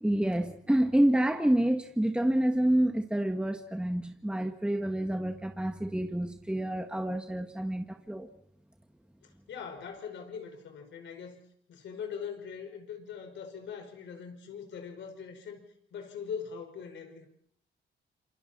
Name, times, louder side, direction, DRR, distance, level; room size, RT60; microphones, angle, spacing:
voice 1, 0.0-8.3, right 1 dB, 5° right, 5 dB, 1.6 m, -28 dB
voice 2, 9.2-11.4 11.7-15.6 15.9-17.3, left 7 dB, 70° left, 5 dB, 5.5 m, -41 dB
28.0 x 25.0 x 4.4 m, 0.69 s
cardioid pair, 90°, 20 cm